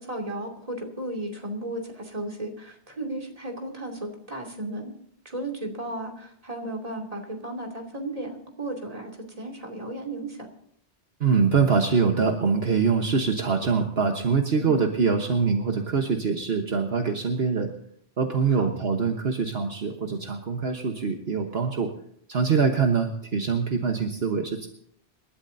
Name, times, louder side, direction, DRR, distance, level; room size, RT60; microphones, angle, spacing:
voice 1, 0.0-4.9 5.2-10.5 14.6-14.8 18.5-18.7, right 1 dB, 35° right, 1 dB, 2.7 m, -35 dB
voice 2, 11.2-17.7 18.2-21.9 22.3-24.7, right 5 dB, 65° right, 4 dB, 1.4 m, -24 dB
27.5 x 13.0 x 2.7 m, 0.68 s
omnidirectional pair, 1.1 m